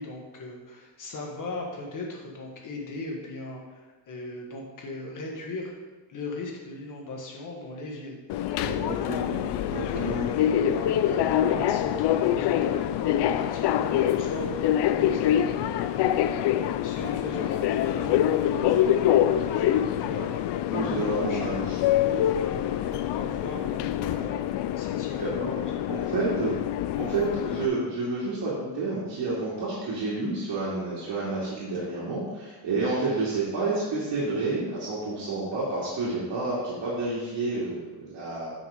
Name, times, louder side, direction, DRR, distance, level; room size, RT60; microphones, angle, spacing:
voice 1, 0.0-5.7 6.1-8.2 8.8-10.1 10.7-14.5 14.9-20.3 20.7-21.4 22.0-25.6, left 2 dB, 45° left, 0 dB, 1.7 m, -38 dB
Subway metro underground, 8.3-27.7, left 11 dB, 65° left, 0.5 m, -25 dB
voice 2, 8.6-10.3 10.6-10.8 20.7-21.8 25.2-25.5 25.9-26.5 26.9-38.5, right 3 dB, 70° right, -8 dB, 2.5 m, -30 dB
9.6 x 5.9 x 3.8 m, 1.2 s
cardioid pair, 160°, 44 cm